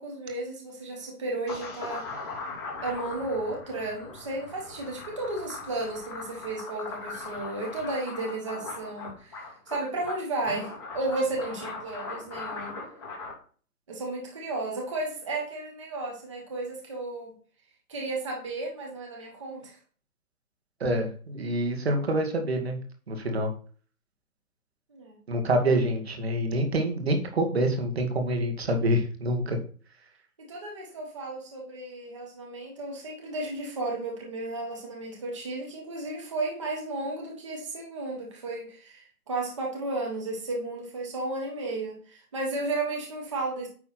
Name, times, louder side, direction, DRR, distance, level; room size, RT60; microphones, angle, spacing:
voice 1, 0.0-2.4 2.8-12.7 13.9-17.3 17.9-19.8 24.9-25.2 30.4-43.7, right 2 dB, 20° right, -1 dB, 1.2 m, -33 dB
sound 1, 1.5-13.3, left 3 dB, 15° left, 1.7 m, -39 dB
voice 2, 20.8-22.8 23.1-23.5 25.3-29.6, right 1 dB, 40° right, 4 dB, 1.9 m, -26 dB
9.6 x 3.5 x 5.6 m, 0.43 s
hypercardioid pair, 175°, 46 cm